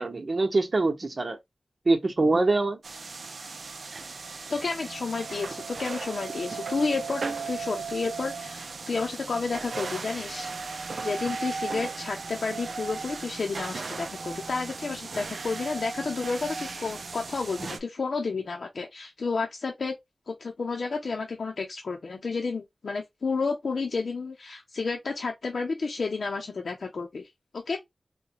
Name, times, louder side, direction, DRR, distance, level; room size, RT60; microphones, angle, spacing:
voice 1, 0.0-1.4 1.8-2.8, right 2 dB, 55° right, 1.0 m, -24 dB
sound 1, 2.8-17.8, right 4 dB, 80° right, 0.4 m, -36 dB
voice 2, 4.5-20.0 20.3-27.3 27.5-27.8, left 4 dB, 80° left, 0.7 m, -31 dB
4.0 x 2.3 x 2.7 m
wide cardioid pair, 55°, 0 cm